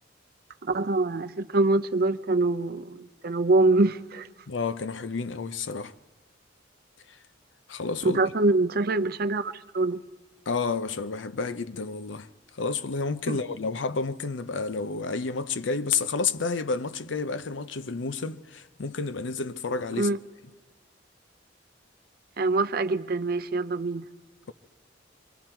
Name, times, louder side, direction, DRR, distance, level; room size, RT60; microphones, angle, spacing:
voice 1, 0.6-4.3 8.0-10.0 13.3-13.4 19.9-20.2 22.4-24.0, right 2 dB, 50° right, 0.6 m, -24 dB
voice 2, 4.5-5.9 7.7-8.2 10.5-12.3 12.6-20.1 24.5-24.6, left 4 dB, 75° left, 0.6 m, -30 dB
26.0 x 22.5 x 4.5 m
head